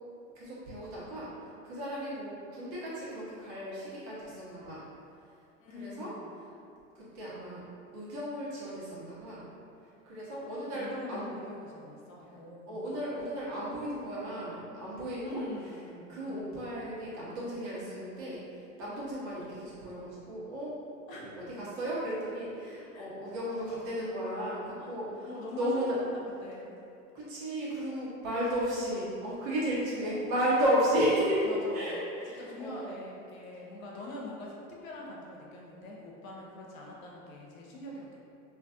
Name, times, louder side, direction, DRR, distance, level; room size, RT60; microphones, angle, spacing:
voice 1, 0.3-1.3 1.6-4.8 5.7-6.1 6.9-7.6 7.9-9.5 10.0-11.3 12.7-15.4 16.1-20.7 21.1-26.0 27.1-31.5 31.7-33.0, equal, 45° right, -8 dB, 1.1 m, -34 dB
voice 2, 5.6-6.5 10.3-13.0 15.2-16.7 21.1-21.4 22.9-23.0 24.8-24.9 25.2-25.8 26.1-26.7 30.0-30.4 31.4-32.0 32.4-38.2, left 1 dB, 80° left, -3 dB, 0.7 m, -44 dB
2.5 x 2.4 x 2.5 m, 2.6 s
hypercardioid pair, 90°, 40 cm